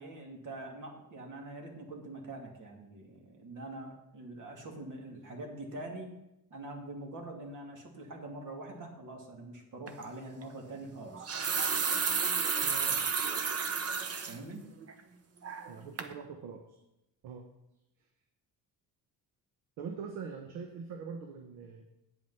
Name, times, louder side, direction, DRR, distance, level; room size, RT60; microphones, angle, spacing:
voice 1, 0.0-6.1 6.5-11.3 14.3-14.6, right 2 dB, 55° right, 2 dB, 2.8 m, -44 dB
sound 1, 9.9-10.0 11.0-14.4 14.8-14.9 15.4-15.7 16.0-16.1, right 5 dB, 40° right, 1.1 m, -31 dB
voice 2, 12.6-13.0 15.7-16.8 17.2-17.4 19.8-21.8, right 6 dB, 90° right, 4 dB, 1.2 m, -43 dB
9.4 x 7.8 x 5.8 m, 0.87 s
cardioid pair, 85°, 36 cm